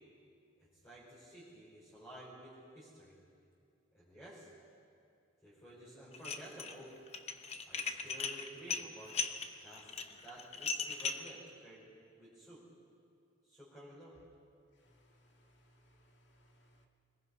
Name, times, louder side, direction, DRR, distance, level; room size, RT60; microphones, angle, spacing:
voice 1, 0.6-3.2 3.9-4.5 5.4-7.0 7.7-9.1 9.6-12.6 13.4-14.1, right 1 dB, 15° left, -9 dB, 4.8 m, -53 dB
Dishes pots and pans, 6.1-6.7 7.1-11.3, left 5 dB, 35° left, 0.9 m, -38 dB
voice 2, 14.8-16.9, equal, 65° left, 1 dB, 2.3 m, -67 dB
25.5 x 20.0 x 5.5 m, 2.5 s
head